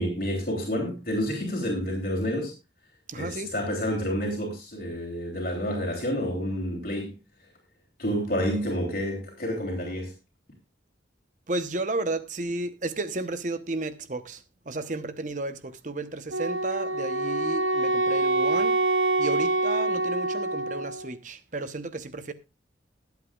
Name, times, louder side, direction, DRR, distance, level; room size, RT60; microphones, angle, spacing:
voice 1, 0.0-2.5 3.2-7.2 8.0-10.1, equal, 50° left, 3.1 m, -29 dB
voice 2, 3.1-3.5 11.5-18.8 19.2-22.3, right 2 dB, 45° right, 0.9 m, -33 dB
Wind instrument woodwind instrument, 16.3-21.1, right 2 dB, 85° right, 1.0 m, -25 dB
22.0 x 8.3 x 2.4 m
head